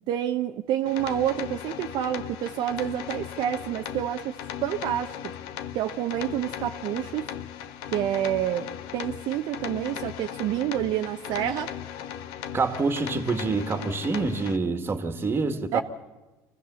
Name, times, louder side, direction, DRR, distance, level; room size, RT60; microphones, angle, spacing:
voice 1, 0.1-4.3 4.6-5.2 5.7-7.3 7.9-11.7 15.7-15.8, right 11 dB, 60° right, 5 dB, 0.8 m, -28 dB
sound 1, 0.9-14.6, left 10 dB, 75° left, 1.1 m, -37 dB
voice 2, 12.5-15.8, right 4 dB, 25° right, 9 dB, 1.8 m, -26 dB
25.5 x 15.5 x 7.0 m, 1.2 s
supercardioid pair, 110°, 8 cm